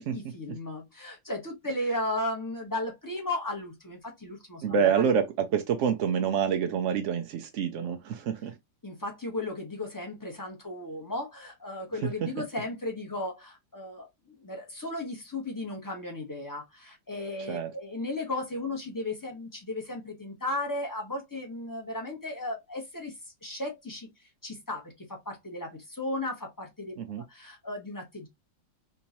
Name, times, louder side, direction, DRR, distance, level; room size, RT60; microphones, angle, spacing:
voice 1, 0.1-5.1 8.8-14.1 14.4-23.1 23.4-24.1 24.4-26.9 27.3-28.3, left 2 dB, 15° left, 0.8 m, -35 dB
voice 2, 4.6-8.5 12.0-12.1 17.5-17.7 27.0-27.2, right 7 dB, 70° right, 0.7 m, -27 dB
3.5 x 3.0 x 2.7 m
omnidirectional pair, 1.8 m